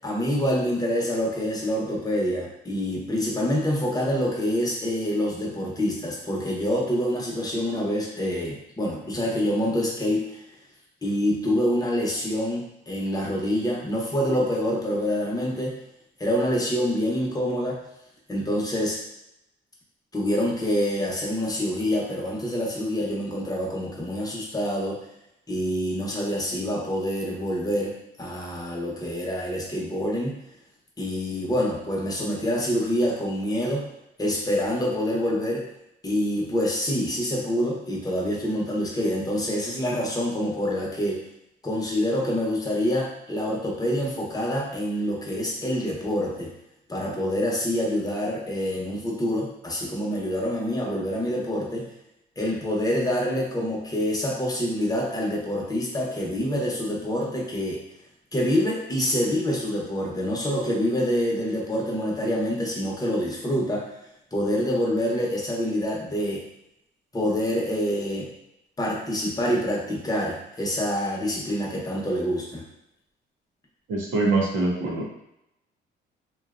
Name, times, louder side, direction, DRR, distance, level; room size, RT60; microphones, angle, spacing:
voice 1, 0.0-10.4 11.0-15.8 16.2-17.8 18.3-19.0 20.1-25.0 25.5-30.4 31.0-33.9 34.2-35.7 36.0-41.2 41.6-46.5 46.9-51.9 52.4-57.8 58.3-63.9 64.3-66.4 67.1-68.3 68.8-72.6, equal, 20° left, -3 dB, 0.8 m, -26 dB
voice 2, 73.9-75.1, right 3 dB, 80° right, -2 dB, 0.7 m, -24 dB
2.6 x 2.2 x 2.4 m, 0.82 s
cardioid pair, 90°, 20 cm